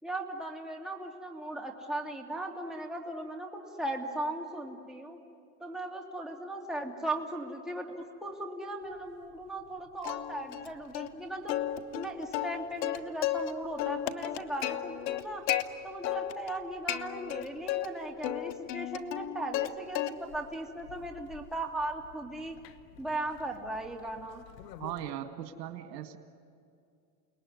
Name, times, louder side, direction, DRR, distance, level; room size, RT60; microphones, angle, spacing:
voice 1, 0.0-5.2 5.6-11.6 11.9-15.5 15.8-22.6 23.0-24.4, right 1 dB, ahead, -1 dB, 2.6 m, -38 dB
Plucked string instrument, 10.0-10.7 10.9-11.1 11.5-13.5 13.8-15.6 16.0-16.6 16.9-17.9 18.2-19.7 19.9-20.4 20.9-25.1, left 13 dB, 80° left, 1.3 m, -34 dB
voice 2, 24.8-26.2, right 11 dB, 80° right, 6 dB, 2.1 m, -38 dB
29.5 x 20.0 x 9.6 m, 2.4 s
supercardioid pair, 130°, 49 cm